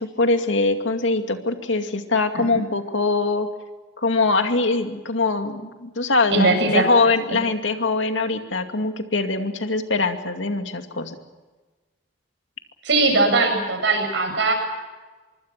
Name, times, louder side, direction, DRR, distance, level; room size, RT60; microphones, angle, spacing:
voice 1, 0.0-3.5 4.0-11.2, left 3 dB, 80° left, 6 dB, 2.4 m, -22 dB
voice 2, 6.3-6.8 12.8-14.5, right 3 dB, 70° right, 4 dB, 7.9 m, -19 dB
25.5 x 24.0 x 6.0 m, 1.3 s
head